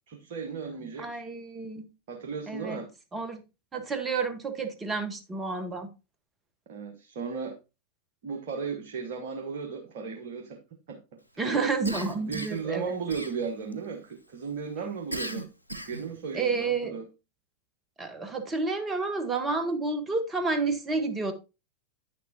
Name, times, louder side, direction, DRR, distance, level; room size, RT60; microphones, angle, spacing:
voice 1, 0.1-1.2 2.1-2.9 6.7-7.6 8.2-10.6 10.9-11.0 11.3-11.5 12.2-15.5 15.9-17.1, right 5 dB, 50° right, 1.1 m, -35 dB
voice 2, 1.0-1.9 2.5-2.8 3.1-3.4 3.7-5.9 11.4-12.9 16.3-17.0 18.0-21.3, right 4 dB, 20° right, 1.2 m, -30 dB
Cough, 11.8-12.7 13.1-13.7 15.1-16.1, right 1 dB, 85° right, 0.8 m, -37 dB
9.3 x 6.6 x 2.8 m
figure-of-eight pair, 90°, 0 cm